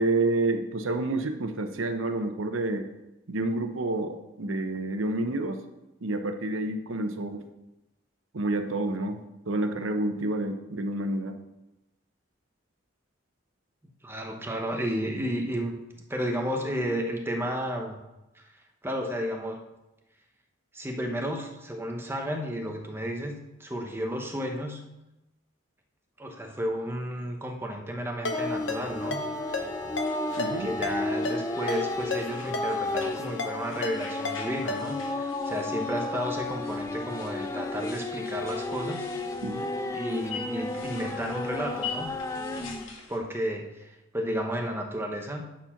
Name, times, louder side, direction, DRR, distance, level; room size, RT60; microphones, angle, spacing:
voice 1, 0.0-2.9 3.3-5.6 6.0-7.4 8.3-11.4 30.4-30.7 39.4-39.7, right 2 dB, 85° right, 7 dB, 0.8 m, -29 dB
voice 2, 14.0-15.7 16.1-18.0 18.4-18.5 18.8-19.6 20.7-24.8 26.2-29.2 30.6-39.0 39.9-42.1 43.1-45.4, equal, 10° right, 2 dB, 0.9 m, -32 dB
Ringtone, 28.2-35.1, left 3 dB, 65° left, 0.9 m, -35 dB
sound 1, 28.3-42.9, left 2 dB, 15° left, 0.4 m, -33 dB
sound 2, 28.6-43.2, left 5 dB, 90° left, 1.5 m, -45 dB
9.5 x 4.4 x 5.8 m, 0.97 s
head